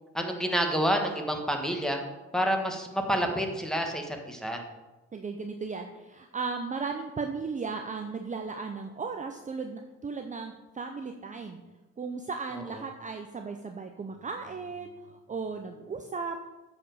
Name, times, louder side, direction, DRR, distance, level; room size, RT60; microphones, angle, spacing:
voice 1, 0.1-2.0 2.3-4.6, equal, ahead, 3 dB, 1.5 m, -28 dB
voice 2, 5.1-11.6 12.0-16.4, right 4 dB, 25° right, 5 dB, 0.7 m, -36 dB
8.5 x 5.0 x 6.4 m, 1.1 s
cardioid pair, 90°, 30 cm